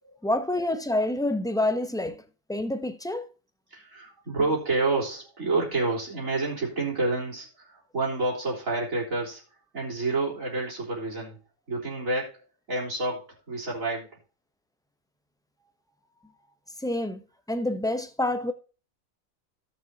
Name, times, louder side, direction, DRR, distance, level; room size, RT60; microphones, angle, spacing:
voice 1, 0.2-2.2 2.5-3.3 16.8-17.2 17.5-18.5, left 1 dB, 5° left, 0.4 m, -27 dB
voice 2, 3.7-9.4 9.7-11.4 11.7-14.1, right 2 dB, 75° right, 4.2 m, -29 dB
17.5 x 6.3 x 2.8 m
omnidirectional pair, 1.4 m